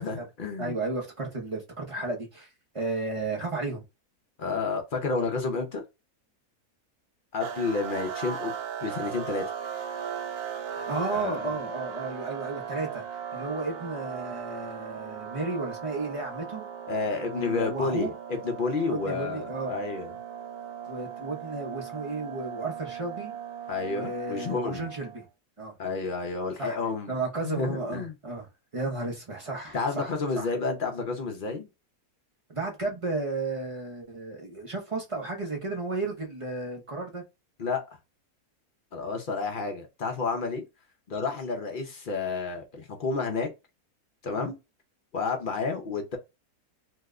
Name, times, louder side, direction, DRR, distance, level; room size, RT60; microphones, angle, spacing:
voice 1, 0.0-0.7 4.4-5.8 7.3-8.5 8.8-9.5 11.1-11.5 16.9-20.1 23.7-24.9 25.8-27.1 27.4-28.1 29.7-31.7 37.6-37.9 38.9-40.6 41.1-43.5 44.2-44.6 45.1-46.2, left 4 dB, 60° left, 0.5 m, -30 dB
voice 2, 0.6-2.5 2.7-3.8 10.7-13.0 13.3-16.6 17.3-18.1 18.9-19.8 20.9-23.4 23.9-25.3 25.6-25.7 26.6-26.8 27.1-28.5 28.7-30.5 32.5-37.2 44.4-44.5, right 3 dB, 55° right, 0.3 m, -33 dB
sound 1, 7.4-25.3, right 8 dB, 80° right, 1.1 m, -38 dB
2.8 x 2.1 x 3.5 m
omnidirectional pair, 1.7 m